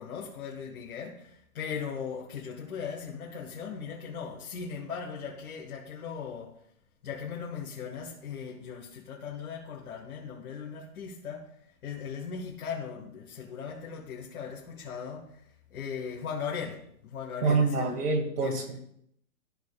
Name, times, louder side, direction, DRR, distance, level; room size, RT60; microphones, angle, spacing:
voice 1, 0.0-6.6 7.0-18.0 18.4-18.6, left 6 dB, 70° left, 1.9 m, -38 dB
voice 2, 17.4-18.8, right 4 dB, 90° right, 2.4 m, -26 dB
13.5 x 6.7 x 2.4 m
hypercardioid pair, 145°, 45 cm